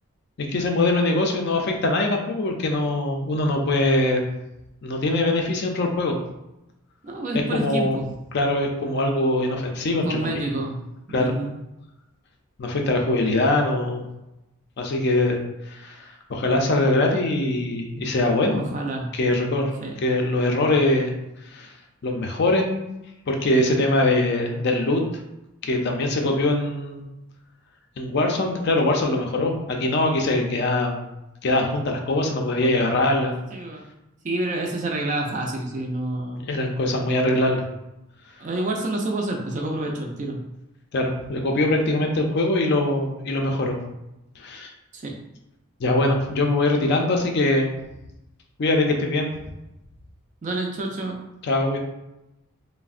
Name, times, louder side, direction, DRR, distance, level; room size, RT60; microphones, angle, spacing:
voice 1, 0.5-4.2 4.8-6.2 7.5-8.0 8.3-10.5 11.1-11.3 12.6-14.0 14.8-15.4 15.7-18.6 19.1-19.7 20.0-21.1 21.4-21.7 22.0-22.8 23.3-25.0 25.6-27.0 28.0-31.1 31.4-33.4 36.5-37.6 40.9-43.8 44.4-44.7 45.8-47.8 48.6-49.3 51.4-51.8, left 2 dB, 50° left, 2 dB, 0.4 m, -22 dB
voice 2, 7.0-8.1 10.0-10.8 11.1-11.6 18.5-19.1 19.8-20.0 33.5-33.9 34.2-36.5 38.4-40.4 44.9-45.1 50.4-51.1, right 2 dB, 35° right, 1 dB, 0.3 m, -28 dB
3.3 x 2.0 x 2.4 m, 0.92 s
head